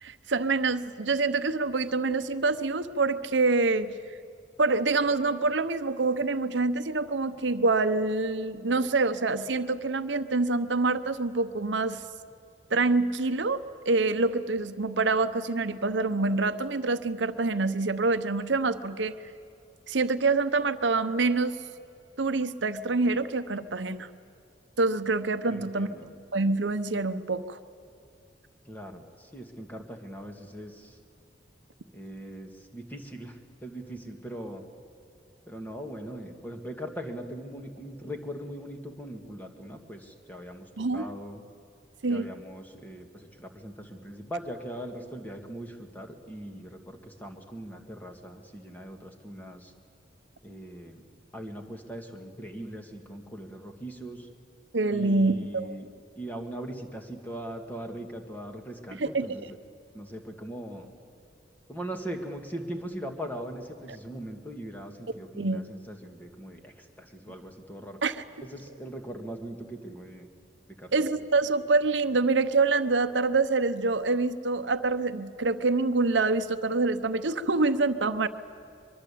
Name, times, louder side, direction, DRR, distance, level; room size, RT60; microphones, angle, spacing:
voice 1, 0.0-3.9 4.6-12.0 12.7-19.1 19.9-21.6 22.2-24.1 24.8-25.9 26.3-27.6 40.8-41.0 42.0-42.3 54.7-55.8 59.0-59.4 65.4-65.6 68.0-68.2 70.9-78.3, right 3 dB, 80° right, 11 dB, 0.9 m, -26 dB
voice 2, 25.5-26.1 28.7-31.0 31.9-34.6 35.5-40.7 40.9-41.4 42.1-49.7 50.4-51.0 51.3-54.3 54.9-55.9 56.2-59.5 59.9-60.9 61.7-68.0 68.4-70.3 70.8-70.9, right 1 dB, 10° left, 3 dB, 2.1 m, -40 dB
23.5 x 23.0 x 8.6 m, 2.4 s
head